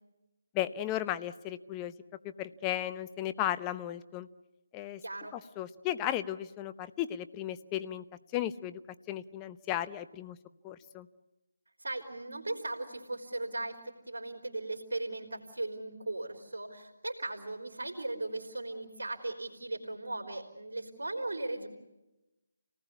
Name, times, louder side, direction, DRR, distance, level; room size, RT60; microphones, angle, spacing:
voice 1, 0.5-1.9 2.4-4.3 4.7-5.0 5.3-8.0 8.3-8.8 9.1-10.4 10.6-11.1, left 12 dB, 15° left, 13 dB, 0.8 m, -35 dB
voice 2, 5.0-5.3 11.8-21.7, right 2 dB, 85° right, 2 dB, 3.8 m, -38 dB
30.0 x 19.0 x 8.3 m, 1.0 s
figure-of-eight pair, 160°, 0 cm